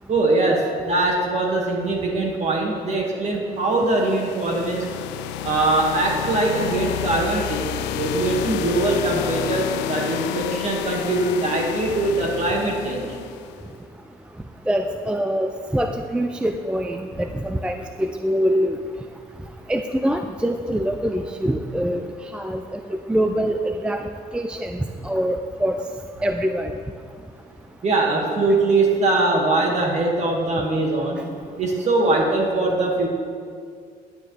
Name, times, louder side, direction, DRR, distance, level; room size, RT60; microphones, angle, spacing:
voice 1, 0.1-4.8 5.4-7.7 7.9-13.0 27.8-31.2 31.6-33.1, right 2 dB, 40° right, -1 dB, 2.0 m, -22 dB
sound 1, 3.8-13.6, left 11 dB, 90° left, 0.4 m, -30 dB
voice 2, 14.7-18.8 19.7-22.1 22.3-25.8 26.2-26.7, equal, 5° right, 6 dB, 0.3 m, -24 dB
11.0 x 8.7 x 3.3 m, 2.2 s
cardioid pair, 110°, 17 cm